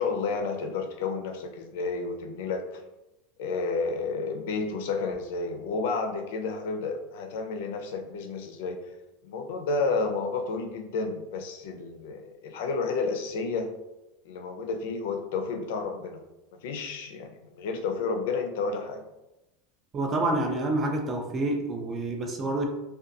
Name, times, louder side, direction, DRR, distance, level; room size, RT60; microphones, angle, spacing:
voice 1, 0.0-2.8 3.4-8.8 9.2-13.7 14.2-16.2 16.6-19.0, left 4 dB, 65° left, 5 dB, 0.4 m, -31 dB
voice 2, 19.9-22.7, right 2 dB, 15° right, 3 dB, 0.3 m, -28 dB
2.4 x 2.2 x 2.6 m, 0.95 s
supercardioid pair, 180°, 0 cm